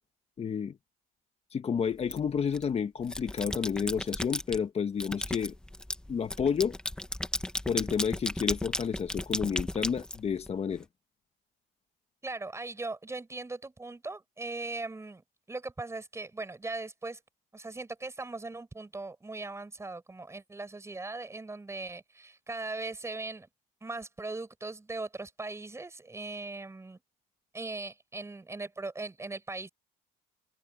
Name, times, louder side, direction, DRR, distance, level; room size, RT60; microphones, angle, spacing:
voice 1, 0.4-0.8 1.5-5.5 6.1-6.8 7.7-10.8, left 7 dB, 35° left, 1.3 m, -30 dB
sound 1, 2.1-2.6 3.0-4.6 5.0-10.8, left 1 dB, 5° left, 1.3 m, -35 dB
voice 2, 12.2-17.2 17.5-23.5 23.8-27.0 27.5-29.7, right 3 dB, 15° right, 7.9 m, -39 dB
cardioid pair, 110°, 17 cm